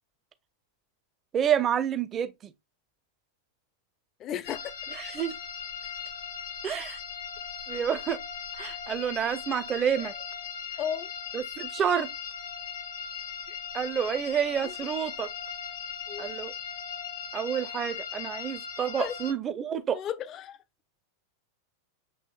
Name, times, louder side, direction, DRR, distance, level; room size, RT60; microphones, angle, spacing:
voice 1, 1.3-2.5 4.9-5.4 6.6-7.0 7.7-8.2 8.6-10.1 11.3-12.1 13.7-15.3 16.2-16.5 17.3-20.0, right 8 dB, 25° right, 0.5 m, -29 dB
voice 2, 4.2-4.7 9.9-10.1 10.8-11.1 13.5-13.6 14.6-14.7 16.1-16.3 19.0-19.1 19.9-20.6, left 9 dB, 30° left, 0.4 m, -34 dB
sound 1, 4.4-19.3, left 7 dB, 65° left, 0.8 m, -38 dB
7.0 x 3.0 x 2.2 m
figure-of-eight pair, 90°, 0 cm